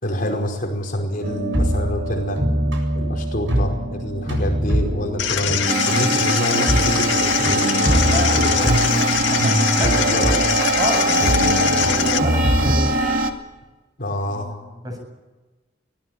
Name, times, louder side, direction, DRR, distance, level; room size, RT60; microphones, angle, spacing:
voice 1, 0.0-2.4 2.9-5.6 5.9-8.7 9.1-9.2 9.8-10.4 14.0-14.5, equal, 50° left, 1 dB, 5.1 m, -26 dB
sound 1, 1.2-12.9, equal, 85° right, 7.8 m, -23 dB
sound 2, 5.2-12.2, left 9 dB, 80° left, 2.0 m, -23 dB
sound 3, 5.7-13.3, right 2 dB, 50° right, 2.3 m, -22 dB
voice 2, 8.0-10.4 10.8-12.9 14.3-14.4 14.8-15.0, equal, 20° right, 4 dB, 7.8 m, -30 dB
25.0 x 18.0 x 9.1 m, 1.2 s
head